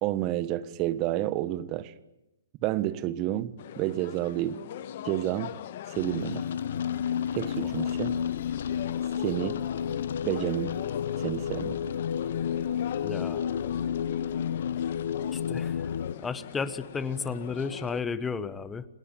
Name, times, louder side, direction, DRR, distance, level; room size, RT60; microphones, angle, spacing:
voice 1, 0.0-1.9 2.6-4.6 5.0-5.6 5.9-6.5 7.3-8.2 9.2-9.6 10.2-10.8 11.2-11.8, right 14 dB, 30° right, 15 dB, 1.5 m, -30 dB
sound 1, 3.6-18.0, left 11 dB, 50° left, 1.5 m, -42 dB
sound 2, 5.9-16.1, left 8 dB, 70° left, 1.1 m, -31 dB
voice 2, 13.0-13.4 15.3-15.9 16.2-18.9, left 5 dB, 10° left, 14 dB, 1.2 m, -33 dB
29.0 x 19.0 x 9.1 m, 0.94 s
hypercardioid pair, 150°, 0 cm